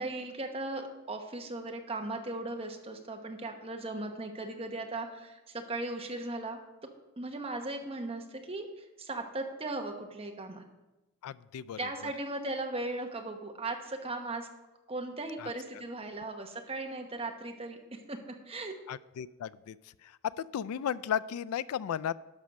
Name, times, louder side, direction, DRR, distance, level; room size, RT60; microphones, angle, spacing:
voice 1, 0.0-6.6 7.2-10.6 11.8-14.5 14.9-18.7, right 2 dB, 25° right, 3 dB, 1.1 m, -37 dB
voice 2, 11.2-12.1 15.4-15.5 18.9-19.8 20.2-22.1, left 9 dB, 85° left, 19 dB, 0.3 m, -35 dB
11.5 x 6.3 x 5.3 m, 1.0 s
head